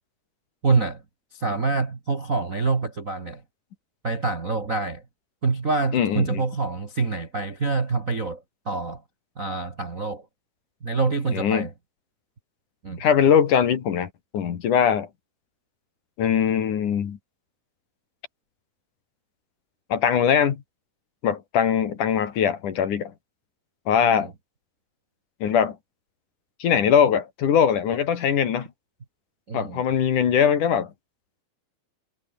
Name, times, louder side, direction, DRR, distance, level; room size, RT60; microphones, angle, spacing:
voice 1, 0.6-1.0 1.3-3.4 4.0-5.0 5.4-9.0 9.4-10.2 10.8-11.7 12.8-13.0 24.0-24.3 29.5-29.8, right 4 dB, 35° right, 1.4 m, -26 dB
voice 2, 5.9-6.4 11.3-11.7 13.0-15.1 16.2-17.2 19.9-20.6 21.2-23.1 23.9-24.3 25.4-25.8 26.6-28.7 29.5-30.9, left 8 dB, 55° left, 3.3 m, -21 dB
omnidirectional pair, 4.5 m